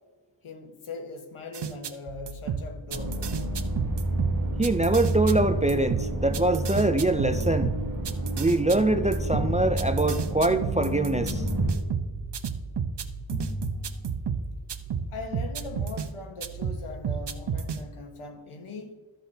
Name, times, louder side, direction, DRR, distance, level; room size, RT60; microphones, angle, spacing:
voice 1, 0.4-3.2 15.1-18.9, left 3 dB, 85° left, 1.4 m, -40 dB
sound 1, 1.5-16.1 16.4-17.8, right 6 dB, 60° right, 0.8 m, -32 dB
sound 2, 2.9-11.7, right 2 dB, 40° right, 1.7 m, -30 dB
voice 2, 4.6-7.7 8.4-11.4, right 2 dB, 15° right, 0.3 m, -24 dB
sound 3, 5.3-6.5 7.3-8.5 9.3-10.5 11.3-12.5 13.3-14.5, left 1 dB, 45° left, 1.2 m, -36 dB
14.0 x 6.1 x 2.7 m
wide cardioid pair, 100°, 48 cm